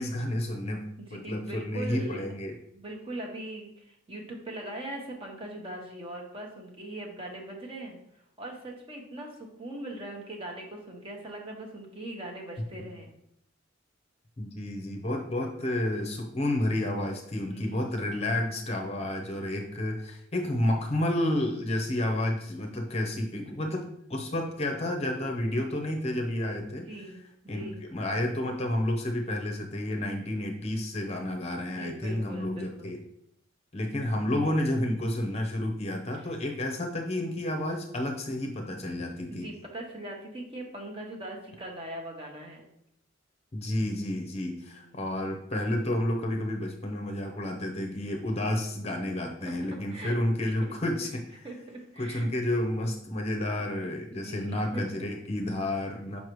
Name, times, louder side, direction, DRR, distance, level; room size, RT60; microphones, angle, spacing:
voice 1, 0.0-0.9 1.1-2.5 14.4-26.8 27.5-33.0 33.7-39.5 43.5-51.5 52.0-56.2, left 1 dB, 30° left, 3 dB, 0.7 m, -30 dB
voice 2, 1.0-2.2 2.7-13.1 17.5-18.3 26.9-27.2 27.4-27.8 31.7-33.0 36.1-36.3 39.3-42.7 44.7-45.0 49.4-49.5 49.9-50.2 50.4-50.7 51.4-52.3 54.1-54.8, right 1 dB, 25° right, 0 dB, 1.1 m, -41 dB
6.5 x 5.5 x 3.1 m, 0.73 s
head